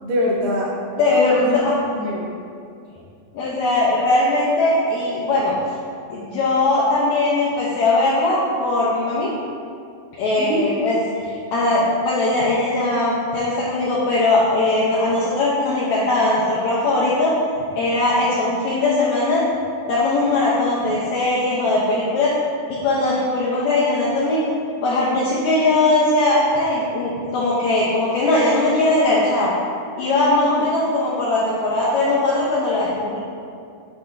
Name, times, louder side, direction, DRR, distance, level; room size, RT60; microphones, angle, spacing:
voice 1, 0.0-0.8 1.4-1.6 1.9-2.3 10.4-10.7 30.3-30.7, equal, 75° right, -3 dB, 2.5 m, -24 dB
voice 2, 1.0-1.7 3.3-5.5 6.1-9.3 10.2-17.3 17.7-19.4 19.9-22.3 22.7-24.4 24.8-29.5 30.0-33.2, left 2 dB, 80° left, -7 dB, 1.6 m, -20 dB
9.7 x 4.0 x 2.5 m, 2.3 s
omnidirectional pair, 4.2 m